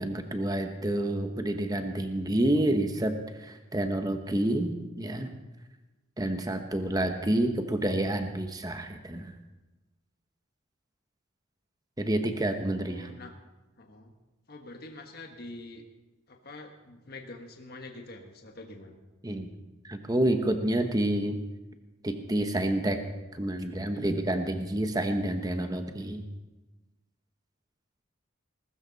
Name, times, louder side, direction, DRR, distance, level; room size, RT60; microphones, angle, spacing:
voice 1, 0.0-5.3 6.2-9.3 12.0-13.1 19.2-19.5 19.8-21.4 22.0-23.0 23.3-26.2, right 1 dB, 20° right, 6 dB, 1.0 m, -29 dB
voice 2, 12.2-13.3 13.8-14.1 14.5-15.8 16.3-19.0, left 2 dB, 50° left, 3 dB, 1.5 m, -46 dB
20.5 x 13.0 x 4.1 m, 1.1 s
head